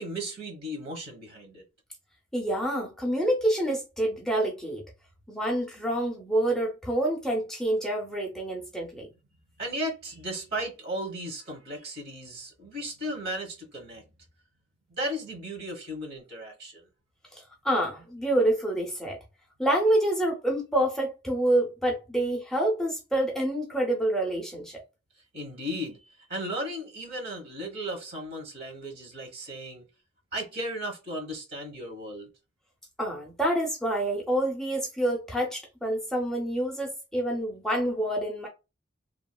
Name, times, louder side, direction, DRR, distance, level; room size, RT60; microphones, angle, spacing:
voice 1, 0.0-1.6 9.6-14.1 14.9-16.9 25.3-29.9 30.3-32.3, equal, 55° right, 1.2 m, -35 dB
voice 2, 2.3-4.8 5.3-9.1 17.6-19.2 19.6-24.8 33.0-38.5, right 1 dB, ahead, 0.5 m, -27 dB
3.0 x 2.3 x 2.2 m
head